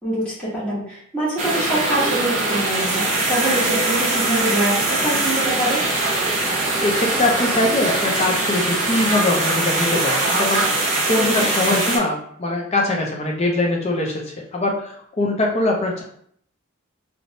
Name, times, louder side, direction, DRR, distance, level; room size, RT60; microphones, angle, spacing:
voice 1, 0.0-5.8 11.2-11.5, right 1 dB, 5° left, -10 dB, 1.1 m, -24 dB
sound 1, 1.4-12.0, right 2 dB, 35° right, 0.6 m, -21 dB
voice 2, 6.8-16.0, left 2 dB, 30° left, 0 dB, 0.5 m, -22 dB
3.0 x 2.0 x 2.7 m, 0.63 s
head